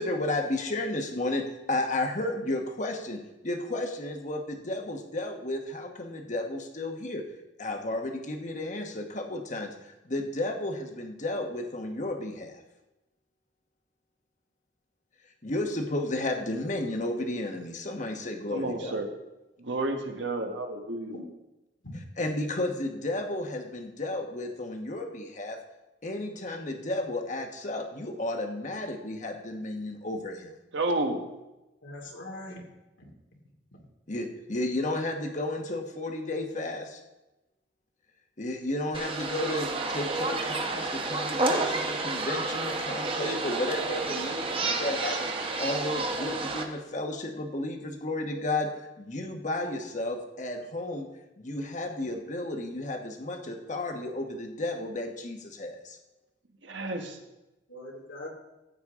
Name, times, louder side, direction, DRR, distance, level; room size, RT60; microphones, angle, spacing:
voice 1, 0.0-7.2 7.6-12.6 15.4-18.9 22.2-25.6 26.0-30.5 34.1-37.0 38.4-45.3 45.6-51.1 51.4-56.0, left 2 dB, 40° left, 4 dB, 1.2 m, -33 dB
voice 2, 18.5-19.1 19.6-21.2 30.7-31.2 56.6-57.2, right 2 dB, 70° right, 4 dB, 1.3 m, -31 dB
voice 3, 31.8-32.6 33.0-33.1 33.7-33.8 57.7-58.3, left 1 dB, 90° left, -1 dB, 2.7 m, -41 dB
sound 1, 38.9-46.6, right 3 dB, 30° right, 1.0 m, -30 dB
14.5 x 8.4 x 3.7 m, 1.0 s
head